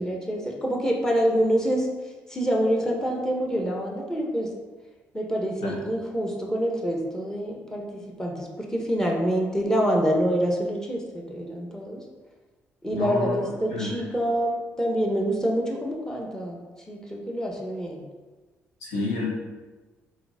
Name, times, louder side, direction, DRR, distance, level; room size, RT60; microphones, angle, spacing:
voice 1, 0.0-1.9 2.3-4.5 5.1-12.0 12.8-16.6 16.9-18.0, equal, 10° left, 0 dB, 1.6 m, -26 dB
voice 2, 12.9-13.4 13.7-13.9 18.8-19.3, left 2 dB, 85° left, -5 dB, 2.2 m, -29 dB
5.9 x 4.6 x 5.1 m, 1.3 s
supercardioid pair, 55°, 6 cm